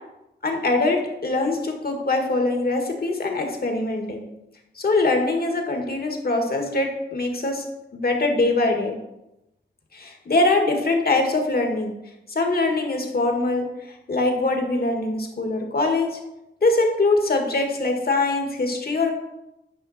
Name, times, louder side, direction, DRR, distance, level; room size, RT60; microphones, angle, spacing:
voice 1, 0.4-4.3 4.7-7.6 7.9-8.9 9.9-11.9 12.3-13.7 14.1-16.2 16.6-19.1, left 2 dB, 55° left, 3 dB, 1.8 m, -23 dB
10.5 x 5.4 x 4.2 m, 0.90 s
cardioid pair, 65°, 19 cm